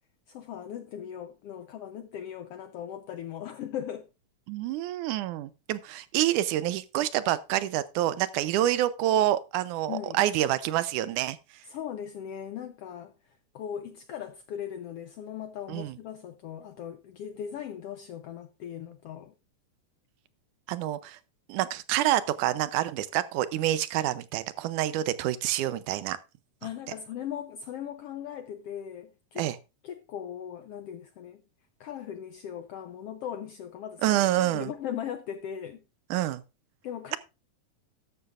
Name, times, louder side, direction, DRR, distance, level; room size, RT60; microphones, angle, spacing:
voice 1, 0.3-4.1 9.9-10.2 11.7-19.3 26.6-29.5 29.8-31.4 31.8-35.8 36.8-37.2, left 9 dB, 75° left, 1.4 m, -39 dB
voice 2, 4.5-11.4 15.7-16.0 20.7-21.2 21.5-26.2 29.4-29.6 34.0-34.7 36.1-36.4, right 13 dB, 85° right, 2.3 m, -27 dB
13.5 x 11.0 x 2.5 m
omnidirectional pair, 3.5 m